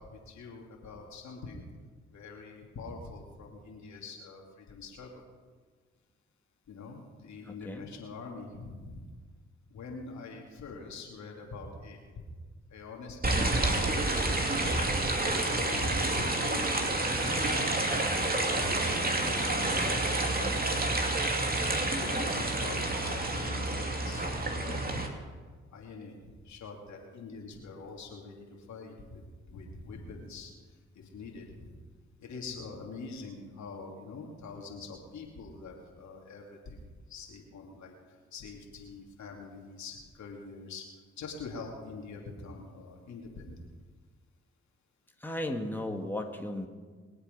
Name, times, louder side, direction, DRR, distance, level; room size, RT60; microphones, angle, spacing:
voice 1, 0.0-1.6 2.1-5.1 6.7-9.1 9.7-12.0 12.7-13.7 14.0-14.9 15.4-17.8 18.6-21.0 21.7-24.3 24.6-25.0 25.7-28.3 28.7-29.2 29.5-30.5 30.9-31.7 32.2-36.8 37.1-37.9 38.3-40.8 41.2-43.6, left 4 dB, 70° left, 0 dB, 2.9 m, -44 dB
voice 2, 7.4-7.9 45.2-46.7, left 1 dB, 5° left, 3 dB, 2.0 m, -35 dB
sound 1, 13.2-25.1, right 2 dB, 30° right, 2.6 m, -29 dB
23.0 x 8.1 x 5.5 m, 1.5 s
hypercardioid pair, 45°, 29 cm